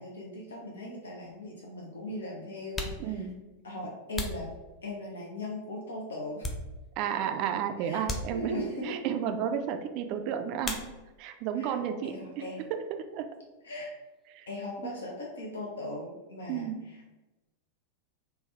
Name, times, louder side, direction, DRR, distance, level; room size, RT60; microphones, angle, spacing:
voice 1, 0.0-3.2 3.6-4.5 4.8-6.5 7.8-8.1 8.3-9.0 11.6-12.6 13.6-13.9 14.5-17.2, left 1 dB, 65° left, -2 dB, 0.6 m, -39 dB
sound 1, 1.9-2.0 2.6-5.2 5.8-7.1 7.4-7.6 8.0-8.8 10.6-11.4 11.7-12.3 12.6-14.8, left 1 dB, 15° left, 0.5 m, -40 dB
voice 2, 3.0-3.4 7.0-10.8 11.2-13.3 14.3-14.5 16.5-16.8, right 8 dB, 40° right, 7 dB, 0.3 m, -32 dB
3.5 x 2.2 x 3.4 m, 1.1 s
figure-of-eight pair, 90°, 0 cm